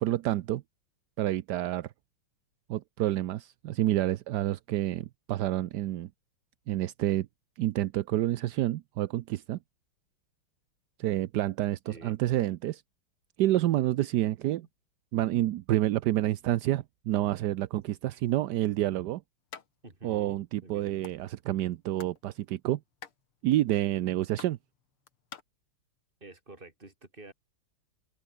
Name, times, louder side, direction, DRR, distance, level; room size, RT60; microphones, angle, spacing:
voice 1, 0.0-0.6 1.2-1.9 2.7-6.1 6.7-7.3 7.6-9.6 11.0-12.8 13.4-14.7 15.1-19.2 20.0-22.8 23.4-24.6, right 14 dB, 70° right, 1.0 m, -28 dB
voice 2, 11.9-12.2 19.8-21.0 26.2-27.3, right 2 dB, 25° right, 3.6 m, -48 dB
sound 1, 19.5-19.7 20.0-20.1 20.3-21.2 21.7-22.2 22.5-25.4, left 8 dB, 85° left, 2.8 m, -47 dB
open air
omnidirectional pair, 2.3 m